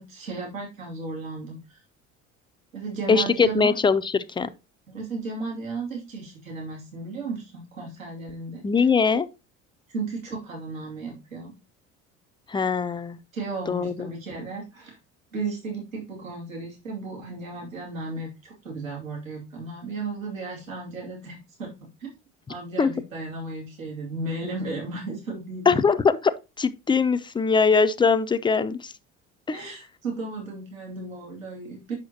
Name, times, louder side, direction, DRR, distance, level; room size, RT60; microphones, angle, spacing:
voice 1, 0.0-1.8 2.7-3.7 4.9-8.9 9.9-11.5 13.3-15.0 15.3-21.7 22.0-22.1 22.5-25.8 29.5-31.9, right 3 dB, 80° right, 2.5 m, -34 dB
voice 2, 3.1-4.5 8.6-9.3 12.5-13.2 13.7-14.1 22.8-22.9 25.7-28.9 29.5-29.7, left 5 dB, 10° left, 0.5 m, -22 dB
8.1 x 6.3 x 2.8 m
figure-of-eight pair, 60°, 39 cm